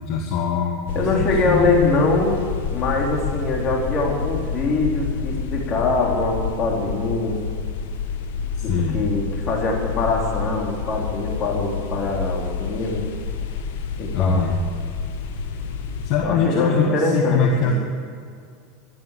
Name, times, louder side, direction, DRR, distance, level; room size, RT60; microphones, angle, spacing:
voice 1, 0.0-1.8 8.6-9.0 14.1-14.5 16.0-17.7, left 5 dB, 55° left, 1 dB, 1.4 m, -22 dB
sound 1, 0.9-16.1, left 5 dB, 80° left, 1.4 m, -29 dB
voice 2, 0.9-2.4 2.7-7.4 8.6-13.1 14.0-14.4 16.2-17.7, left 3 dB, 35° left, -1 dB, 3.6 m, -23 dB
14.0 x 11.0 x 7.6 m, 2.2 s
supercardioid pair, 135°, 0 cm